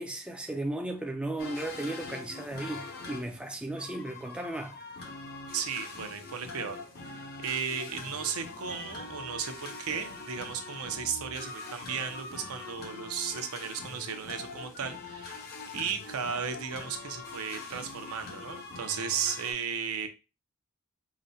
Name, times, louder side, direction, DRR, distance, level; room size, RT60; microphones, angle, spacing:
voice 1, 0.0-4.8, right 1 dB, 5° right, 0.3 m, -35 dB
sound 1, 1.4-19.5, left 3 dB, 45° left, 0.7 m, -43 dB
voice 2, 5.5-6.8 7.0-15.5 15.7-20.1, right 7 dB, 65° right, 0.6 m, -35 dB
4.9 x 2.1 x 2.7 m
head